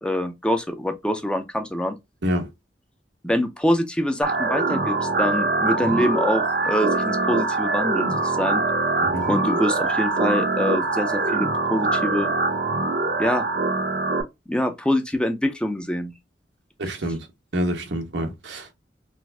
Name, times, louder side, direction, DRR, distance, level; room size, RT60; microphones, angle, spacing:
voice 1, 0.0-1.9 3.2-8.6 9.2-12.3 13.2-13.5 14.5-16.1, left 1 dB, 5° left, 0.4 m, -25 dB
sound 1, 4.2-14.2, right 3 dB, 60° right, 0.6 m, -23 dB
voice 2, 16.8-17.2 17.5-18.7, equal, 90° right, 1.0 m, -26 dB
4.0 x 2.5 x 2.2 m
head